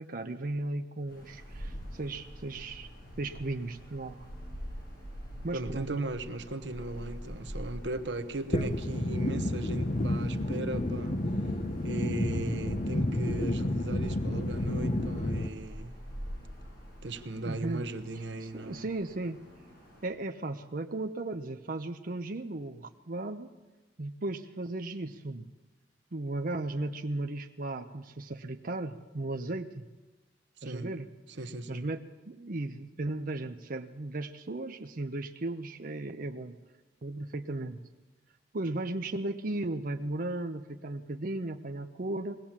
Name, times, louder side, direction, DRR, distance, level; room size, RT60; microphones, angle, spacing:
voice 1, 0.0-2.9 3.2-4.2 5.4-5.9 17.4-17.8 18.4-19.4 20.0-23.5 24.0-25.5 26.1-29.9 30.6-31.1 31.7-36.6 37.0-37.9 38.5-42.4, right 2 dB, 50° right, 0.7 m, -36 dB
sound 1, 1.1-20.1, equal, 60° left, 7.5 m, -46 dB
voice 2, 5.5-11.2 11.8-16.0 17.0-18.9 30.6-30.9 31.3-31.8, right 2 dB, 80° right, 1.0 m, -37 dB
sound 2, 8.5-15.5, left 1 dB, 40° left, 1.0 m, -30 dB
21.0 x 17.0 x 7.3 m
head